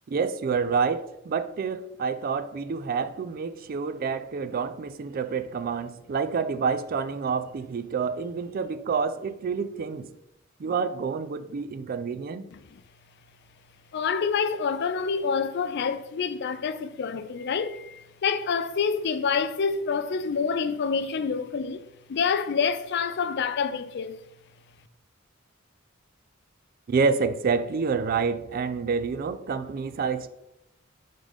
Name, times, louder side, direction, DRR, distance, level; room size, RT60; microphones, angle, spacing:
voice 1, 0.1-10.1 10.6-12.5 26.9-30.3, right 5 dB, 45° right, 0.3 m, -28 dB
voice 2, 13.9-21.8 22.1-24.2, left 5 dB, 55° left, 0.4 m, -27 dB
5.3 x 3.7 x 4.9 m
head